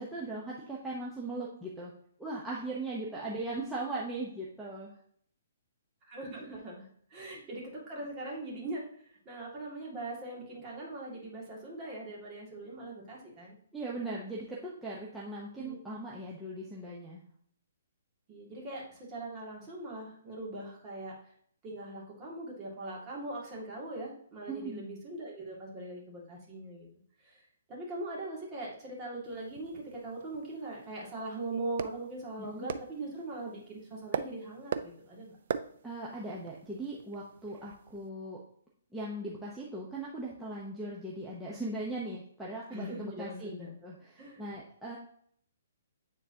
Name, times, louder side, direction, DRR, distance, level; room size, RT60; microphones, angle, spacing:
voice 1, 0.0-1.9 2.2-4.9 13.7-17.2 24.5-24.8 32.4-32.7 35.8-38.4 38.9-43.5 43.8-45.0, right 2 dB, 5° right, -7 dB, 0.8 m, -39 dB
voice 2, 6.1-6.8 7.1-8.8 9.3-13.5 15.6-15.8 18.3-21.1 21.6-26.9 27.2-27.4 27.7-35.4 42.7-43.7 44.2-44.4, right 2 dB, 20° right, -3 dB, 2.0 m, -41 dB
sound 1, 29.2-38.1, right 7 dB, 55° right, 0.4 m, -42 dB
9.2 x 3.8 x 2.8 m, 0.63 s
hypercardioid pair, 160°, 0 cm